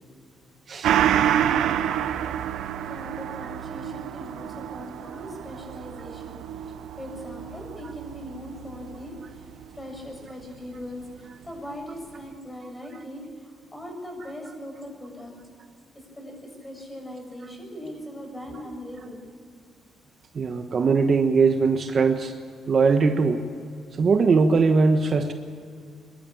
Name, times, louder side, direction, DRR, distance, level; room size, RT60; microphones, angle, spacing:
Gong, 0.8-9.8 10.1-10.2, right 10 dB, 80° right, 0.8 m, -28 dB
voice 1, 2.8-15.3 15.9-19.2, equal, 15° left, 2 dB, 7.2 m, -40 dB
voice 2, 20.3-22.3 22.7-23.4 24.0-25.3, right 4 dB, 45° right, 6 dB, 1.3 m, -20 dB
24.5 x 12.5 x 8.6 m, 2.3 s
cardioid pair, 90°, 0 cm